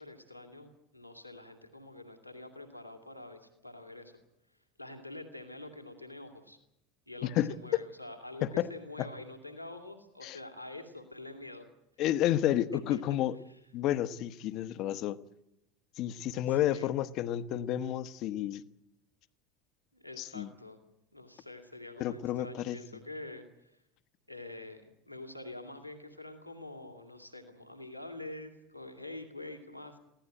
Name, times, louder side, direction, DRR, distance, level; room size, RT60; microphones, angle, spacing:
voice 1, 0.0-4.2 4.8-6.6 7.1-11.7 12.2-12.3 12.9-13.0 13.5-13.6 16.5-16.9 19.9-20.8 21.1-23.7 24.3-30.0, left 2 dB, 90° left, 4 dB, 2.5 m, -46 dB
voice 2, 12.0-13.4 13.7-15.2 16.0-18.6 20.2-20.5 22.0-22.8, left 12 dB, 45° left, 13 dB, 1.0 m, -31 dB
23.5 x 16.5 x 9.1 m, 0.84 s
figure-of-eight pair, 75°, 0 cm